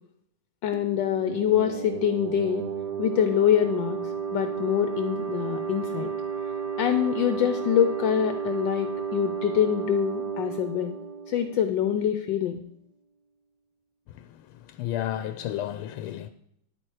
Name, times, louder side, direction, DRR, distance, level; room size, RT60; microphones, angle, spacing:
voice 1, 0.6-2.7 3.0-6.1 6.8-10.9 11.3-12.6, left 10 dB, 75° left, 1.3 m, -25 dB
sound 1, 0.7-12.1, right 6 dB, 60° right, 1.4 m, -33 dB
voice 2, 14.1-16.3, left 12 dB, 90° left, 1.4 m, -33 dB
10.5 x 8.6 x 4.8 m
omnidirectional pair, 2.2 m